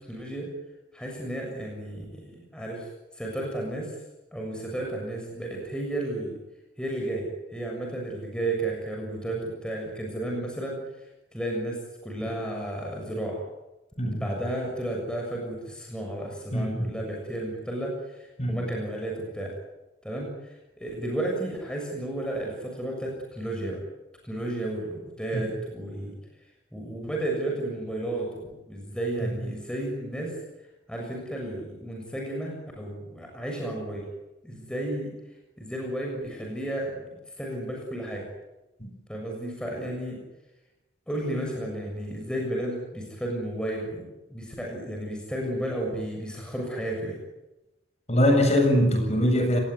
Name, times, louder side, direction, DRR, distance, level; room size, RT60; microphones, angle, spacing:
voice 1, 0.1-0.5 0.9-2.9 3.1-4.0 4.3-6.4 6.8-13.4 14.0-19.6 20.0-23.8 24.2-26.2 26.7-30.4 30.9-34.1 34.4-35.1 35.6-37.0 37.4-38.3 39.1-40.2 41.1-47.2, right 1 dB, 5° left, 0 dB, 6.9 m, -33 dB
voice 2, 16.5-16.9 18.4-18.6 25.3-25.5 29.2-29.3 38.8-38.9 48.1-49.6, equal, 35° left, 5 dB, 7.3 m, -23 dB
30.0 x 20.0 x 9.7 m, 0.99 s
head